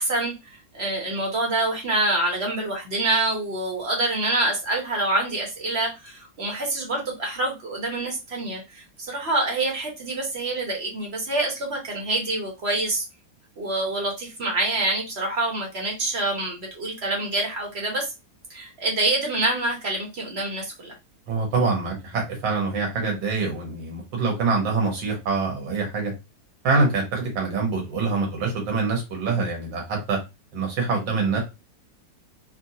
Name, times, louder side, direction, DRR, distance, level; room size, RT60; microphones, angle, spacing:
voice 1, 0.0-13.0 13.6-18.1 18.5-20.9, right 2 dB, 45° right, 0 dB, 1.0 m, -26 dB
voice 2, 21.3-26.1 26.6-30.2 30.5-31.4, right 4 dB, 80° right, 0 dB, 1.9 m, -25 dB
4.3 x 2.2 x 2.7 m, 0.25 s
omnidirectional pair, 2.0 m